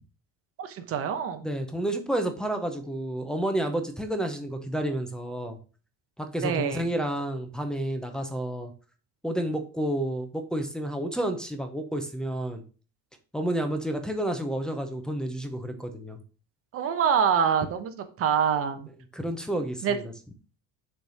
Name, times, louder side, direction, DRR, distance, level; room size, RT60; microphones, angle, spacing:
voice 1, 0.6-1.5 6.4-6.9 16.7-18.9 19.8-20.0, right 7 dB, 40° right, 8 dB, 1.0 m, -25 dB
voice 2, 1.4-5.6 6.2-8.7 9.2-12.6 13.3-16.2 19.1-20.0, right 1 dB, ahead, 4 dB, 0.6 m, -30 dB
6.6 x 3.3 x 5.6 m, 0.37 s
cardioid pair, 150°, 36 cm